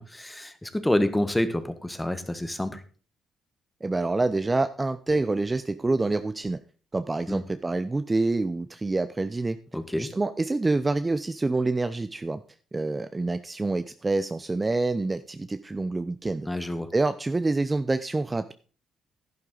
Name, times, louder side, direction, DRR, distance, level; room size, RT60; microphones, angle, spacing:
voice 1, 0.0-2.8 7.3-7.4 9.7-10.1 16.4-16.9, left 1 dB, 10° left, 10 dB, 1.4 m, -28 dB
voice 2, 3.8-6.6 6.9-9.6 10.0-12.4 12.7-16.5 16.9-18.5, right 3 dB, 20° right, 11 dB, 0.6 m, -27 dB
11.0 x 11.0 x 3.9 m, 0.37 s
cardioid pair, 90°, 0 cm